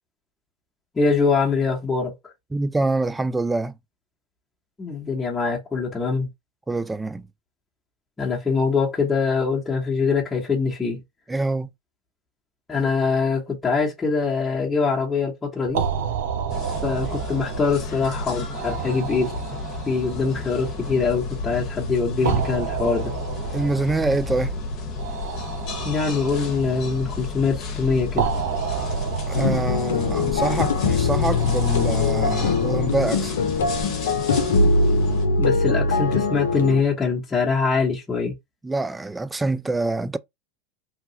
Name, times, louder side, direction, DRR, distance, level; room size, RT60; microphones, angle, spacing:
voice 1, 0.9-2.1 4.8-6.3 8.2-11.0 12.7-15.8 16.8-19.4 19.9-23.1 25.8-28.3 35.4-38.3, left 4 dB, 15° left, 1.1 m, -23 dB
voice 2, 2.5-3.7 6.7-7.2 11.3-11.7 23.5-24.5 29.3-33.4 38.6-40.2, right 2 dB, 10° right, 0.3 m, -25 dB
sound 1, 15.7-33.8, right 7 dB, 70° right, 0.5 m, -32 dB
sound 2, 16.5-35.3, left 3 dB, 50° left, 1.0 m, -32 dB
sound 3, 29.3-36.8, left 3 dB, 80° left, 0.7 m, -22 dB
2.9 x 2.3 x 2.9 m
hypercardioid pair, 95°, 0 cm